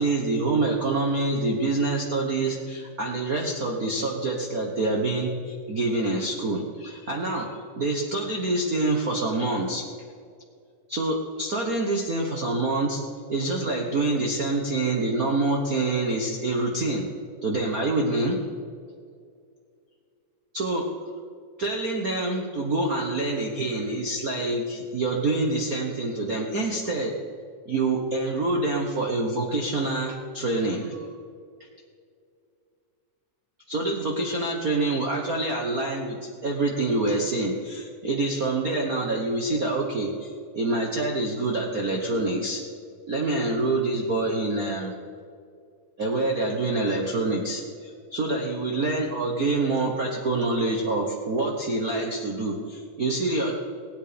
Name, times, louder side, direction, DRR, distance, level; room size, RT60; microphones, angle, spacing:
voice 1, 0.0-7.5 7.8-9.8 10.9-13.0 13.3-17.1 17.4-18.4 20.5-20.9 21.6-27.1 27.7-31.1 33.7-36.2 36.4-42.6 43.1-44.9 46.0-53.5, right 2 dB, 85° right, 0 dB, 0.7 m, -26 dB
19.0 x 9.1 x 5.2 m, 2.3 s
omnidirectional pair, 3.6 m